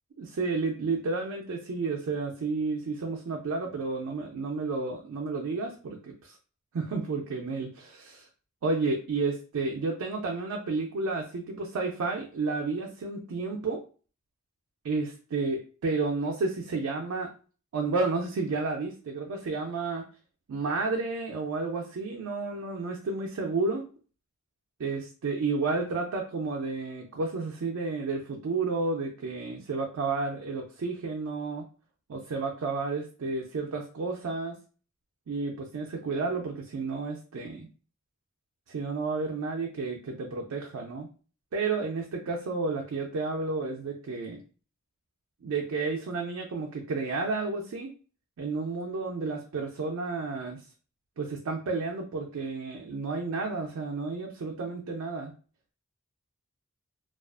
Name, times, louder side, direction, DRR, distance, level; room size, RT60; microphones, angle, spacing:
voice 1, 0.2-6.4 6.7-8.3 8.6-13.8 14.8-17.3 17.7-20.1 20.5-23.8 24.8-31.7 32.1-34.6 35.3-37.7 38.7-41.1 41.5-44.4 45.4-47.9 48.4-50.6 51.2-55.3, right 3 dB, 80° right, 1 dB, 0.4 m, -31 dB
2.3 x 2.3 x 2.4 m, 0.38 s
head